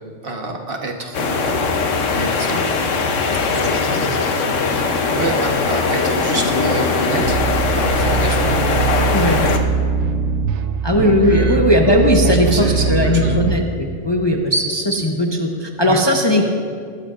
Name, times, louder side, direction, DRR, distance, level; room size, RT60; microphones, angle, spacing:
voice 1, 0.2-1.7 2.1-2.6 3.5-4.2 5.1-7.4 7.7-8.6 11.0-11.9 12.2-13.4 15.8-16.0, right 2 dB, 50° right, 2 dB, 1.3 m, -27 dB
sound 1, 1.1-9.6, left 4 dB, 75° left, 1.2 m, -20 dB
sound 2, 7.2-13.6, right 5 dB, 70° right, 0.9 m, -21 dB
voice 2, 10.8-16.4, left 1 dB, 25° left, 1 dB, 0.7 m, -17 dB
19.0 x 13.0 x 2.5 m, 2.2 s
omnidirectional pair, 1.3 m